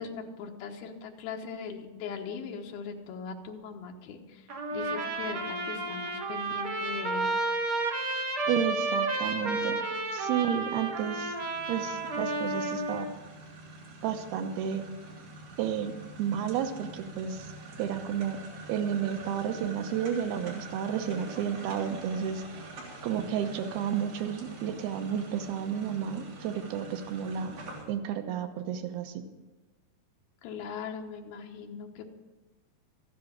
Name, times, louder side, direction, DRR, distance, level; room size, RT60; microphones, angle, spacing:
voice 1, 0.0-7.3 30.4-32.1, left 5 dB, 80° left, 2 dB, 3.0 m, -40 dB
Trumpet, 4.5-13.1, right 2 dB, 55° right, 1.5 m, -31 dB
voice 2, 8.5-9.8 10.1-11.4 11.7-13.1 14.0-14.8 15.6-17.5 17.8-18.4 18.7-22.6 23.0-27.5 27.9-29.2, right 8 dB, 85° right, 7 dB, 2.9 m, -32 dB
sound 1, 9.9-27.8, right 2 dB, 70° right, 5.2 m, -46 dB
14.5 x 10.5 x 6.4 m, 1.2 s
omnidirectional pair, 4.3 m